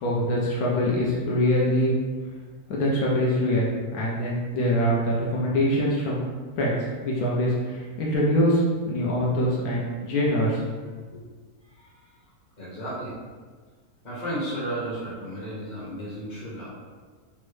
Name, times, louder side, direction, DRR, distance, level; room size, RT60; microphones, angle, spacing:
voice 1, 0.0-1.9 2.7-6.2 6.6-10.6, equal, 75° left, -4 dB, 1.0 m, -24 dB
voice 2, 11.6-12.1 12.6-13.1 14.0-16.7, right 1 dB, 35° left, -7 dB, 0.9 m, -33 dB
3.4 x 2.1 x 3.2 m, 1.5 s
omnidirectional pair, 1.7 m